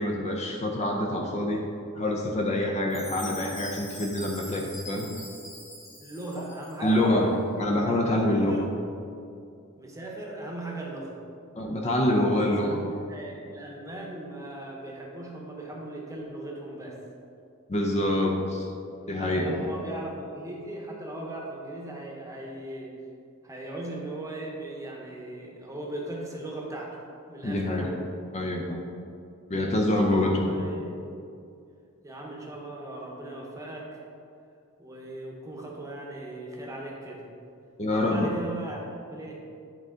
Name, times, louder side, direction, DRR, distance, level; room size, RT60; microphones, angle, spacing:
voice 1, 0.0-1.7 2.0-5.1 6.8-8.6 11.6-12.8 17.7-18.7 19.1-19.6 27.4-27.9 28.3-28.8 29.5-30.5 37.8-38.3, left 1 dB, 30° left, 1 dB, 0.6 m, -26 dB
Chime, 2.9-6.9, equal, 15° left, 1.4 m, -43 dB
voice 2, 6.0-7.3 8.0-8.7 9.8-11.2 12.2-17.0 19.2-22.9 23.4-27.0 27.3-28.0 30.3-31.1 32.0-34.0 34.8-37.3 37.9-38.8 39.1-39.4, right 1 dB, 15° right, -2 dB, 1.0 m, -38 dB
10.0 x 3.7 x 3.7 m, 2.5 s
head